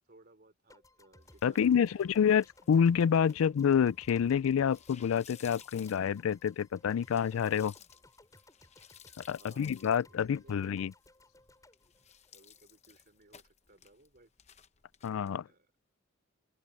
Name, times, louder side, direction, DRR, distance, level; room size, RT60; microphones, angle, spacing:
voice 1, 0.1-2.2 9.1-10.8 12.3-14.3 15.4-15.7, right 2 dB, 45° right, 3.9 m, -61 dB
sound 1, 0.7-12.9, left 1 dB, 15° left, 5.8 m, -61 dB
sound 2, 1.2-15.3, left 8 dB, 35° left, 0.9 m, -59 dB
voice 2, 1.4-7.7 9.2-10.9 15.0-15.4, left 7 dB, 80° left, 0.3 m, -28 dB
open air
head